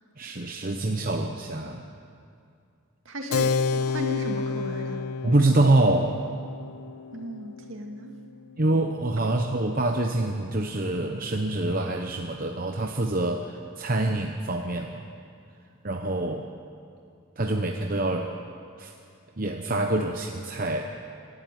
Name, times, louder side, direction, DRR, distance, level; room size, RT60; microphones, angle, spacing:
voice 1, 0.2-1.9 5.2-6.2 8.6-15.1 15.8-16.5 17.4-18.4 18.8-18.9 19.4-20.9, right 2 dB, 40° right, 3 dB, 0.9 m, -25 dB
voice 2, 3.1-5.1 7.1-8.2, equal, 60° right, 3 dB, 2.3 m, -35 dB
Keyboard (musical), 3.3-9.4, left 5 dB, 90° left, 0.6 m, -31 dB
24.5 x 12.0 x 9.3 m, 2.4 s
head